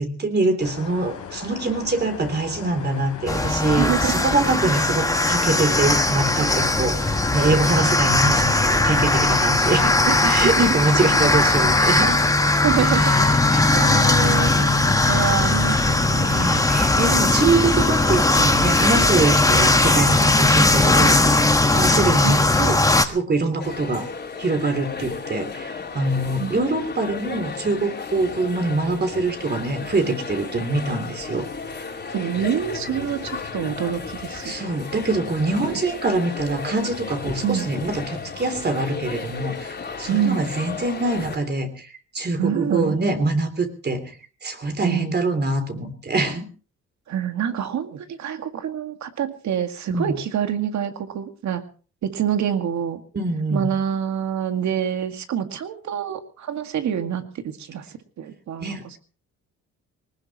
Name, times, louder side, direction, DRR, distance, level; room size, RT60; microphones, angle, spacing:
voice 1, 0.0-10.0 10.2-12.2 12.8-13.3 13.8-14.6 15.0-15.3 16.2-21.4 21.7-24.1 24.4-31.5 34.4-44.2 44.4-46.5 49.9-50.2 53.1-53.7 58.6-59.0, right 2 dB, 35° right, 8 dB, 3.3 m, -24 dB
sound 1, 0.6-17.8, left 8 dB, 80° left, 3.9 m, -38 dB
sound 2, 3.3-23.0, left 2 dB, 10° left, 1.4 m, -19 dB
voice 2, 3.8-4.2 10.1-10.6 12.6-13.2 13.5-16.3 22.2-22.4 26.4-26.5 32.1-34.5 35.7-35.8 37.4-37.7 40.1-40.5 42.4-43.0 44.8-45.2 47.1-51.6 52.0-53.0 53.5-59.0, right 9 dB, 65° right, 7 dB, 2.1 m, -26 dB
sound 3, 23.6-41.4, left 5 dB, 35° left, 3.8 m, -34 dB
20.5 x 19.0 x 3.1 m, 0.38 s
cardioid pair, 90°, 30 cm